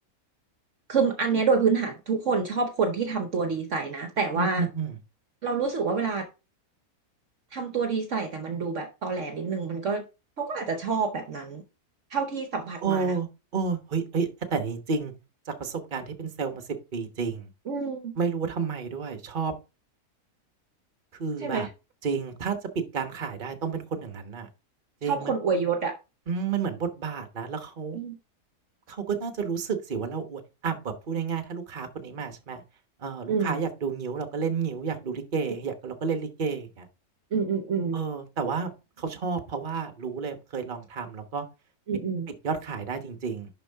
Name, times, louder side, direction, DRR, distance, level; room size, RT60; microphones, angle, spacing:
voice 1, 0.9-4.6 5.4-6.3 7.5-10.0 10.4-11.6 12.1-13.1 17.7-18.1 21.4-21.7 25.0-26.0 27.9-28.2 33.3-33.6 37.3-38.0 41.9-42.3, right 5 dB, 55° right, 1.2 m, -27 dB
voice 2, 4.3-4.9 12.8-13.3 13.5-15.1 15.5-16.6 16.9-17.5 18.2-19.5 21.2-21.7 22.0-24.5 25.0-25.3 26.3-28.0 28.9-32.6 33.0-36.9 37.9-41.4 42.4-43.5, right 5 dB, 35° right, 1.2 m, -31 dB
11.0 x 4.6 x 3.5 m
omnidirectional pair, 1.6 m